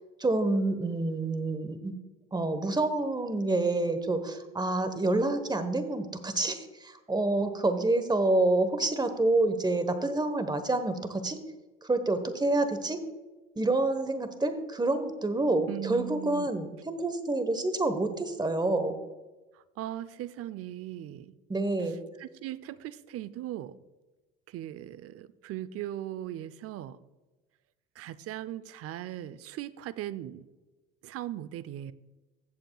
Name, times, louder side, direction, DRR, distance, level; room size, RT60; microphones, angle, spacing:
voice 1, 0.2-1.9 2.3-11.4 11.8-13.0 13.6-18.9 21.5-22.0, right 2 dB, 15° right, 10 dB, 1.2 m, -28 dB
voice 2, 15.7-16.5 19.5-21.3 22.2-23.8 24.5-27.0 28.0-30.5 31.0-31.9, right 13 dB, 45° right, 16 dB, 0.6 m, -39 dB
14.5 x 7.7 x 2.3 m, 1.1 s
hypercardioid pair, 75°, 32 cm